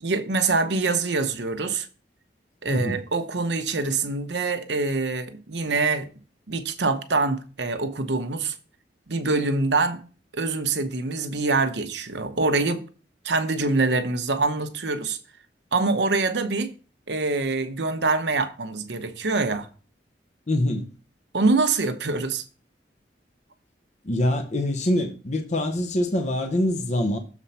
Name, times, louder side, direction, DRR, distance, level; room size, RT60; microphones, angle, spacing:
voice 1, 0.0-1.9 2.6-6.1 6.5-8.5 9.1-10.0 10.3-12.8 13.2-15.2 15.7-16.7 17.1-19.7 21.3-22.4, right 3 dB, 75° right, 0.9 m, -25 dB
voice 2, 2.7-3.0 20.5-20.9 24.0-27.2, left 1 dB, 40° left, 0.7 m, -24 dB
7.2 x 4.2 x 5.5 m
head